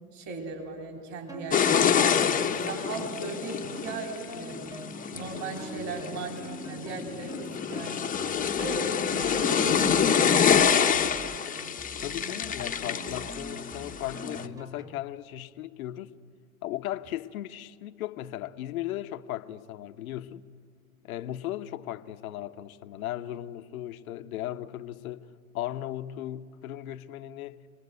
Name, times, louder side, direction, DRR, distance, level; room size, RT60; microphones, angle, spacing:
voice 1, 0.1-2.1 2.7-4.8 5.1-11.2, right 3 dB, 40° right, 3.9 m, -38 dB
sound 1, 1.3-15.0, right 2 dB, 10° right, 1.0 m, -45 dB
sound 2, 1.5-14.5, left 7 dB, 20° left, 0.9 m, -27 dB
voice 2, 12.0-16.1 16.6-20.4 21.0-25.3 25.5-27.6, left 13 dB, 75° left, 1.1 m, -37 dB
26.0 x 20.0 x 8.3 m
hypercardioid pair, 105°, 43 cm